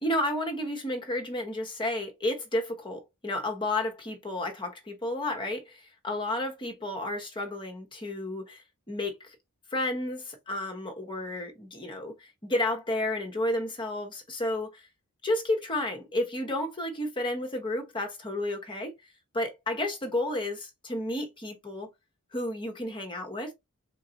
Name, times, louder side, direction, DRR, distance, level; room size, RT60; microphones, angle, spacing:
voice 1, 0.0-9.4 9.7-14.8 15.2-18.9 19.3-21.9 22.3-23.5, left 1 dB, 20° left, 1.2 m, -32 dB
3.9 x 3.8 x 2.8 m
head